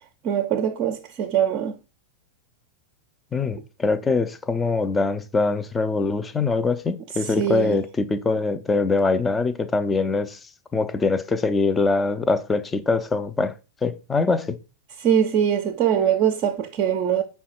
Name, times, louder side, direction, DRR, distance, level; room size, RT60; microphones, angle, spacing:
voice 1, 0.2-1.7 7.3-7.8 15.0-17.2, right 9 dB, 35° right, 0.5 m, -22 dB
voice 2, 3.3-10.4 10.7-13.5 13.8-14.6, left 3 dB, 15° left, 0.4 m, -23 dB
5.4 x 2.2 x 4.5 m
figure-of-eight pair, 90°, 0 cm